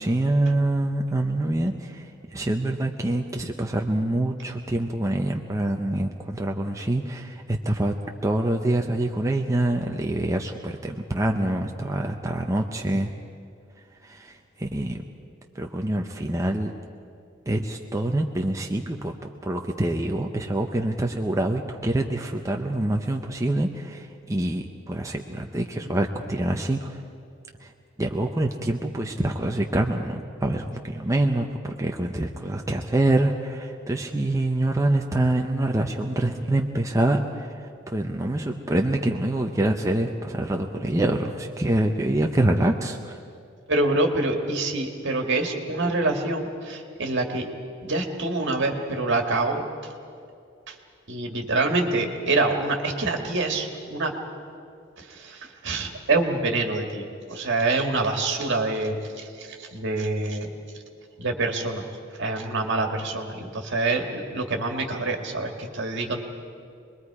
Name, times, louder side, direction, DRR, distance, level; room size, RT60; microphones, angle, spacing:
voice 1, 0.0-7.9 8.2-13.1 14.0-15.0 15.5-16.7 17.5-27.0 27.6-27.7 28.0-43.2, right 1 dB, 15° right, 2 dB, 0.7 m, -25 dB
voice 2, 43.7-47.5 47.8-49.6 50.7-50.8 51.1-54.1 55.0-60.5 61.2-61.8 62.2-66.2, right 2 dB, 60° right, 3 dB, 2.1 m, -26 dB
26.5 x 21.0 x 4.9 m, 2.4 s
head